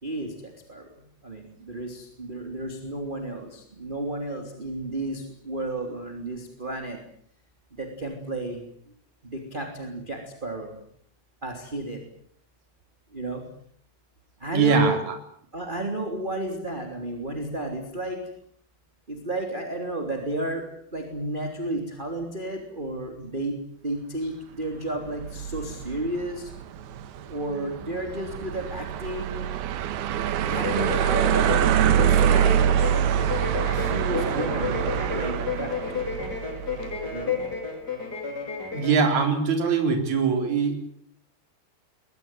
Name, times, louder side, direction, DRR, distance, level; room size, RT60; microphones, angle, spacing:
voice 1, 0.0-0.9 1.2-7.0 7.8-8.6 9.2-10.8 11.4-12.0 13.1-13.5 14.4-15.0 15.5-18.2 19.1-20.6 20.9-23.6 23.8-26.5 27.3-29.5 30.4-31.6 32.0-32.6 33.7-36.1 37.1-37.4, right 2 dB, 15° right, 3 dB, 2.9 m, -32 dB
voice 2, 14.5-15.0 38.7-40.8, right 5 dB, 45° right, 4 dB, 5.1 m, -22 dB
sound 1, 25.1-37.2, right 10 dB, 75° right, 3.1 m, -25 dB
sound 2, 30.5-39.0, left 5 dB, 25° left, 5.5 m, -32 dB
22.5 x 20.0 x 9.1 m, 0.64 s
omnidirectional pair, 4.7 m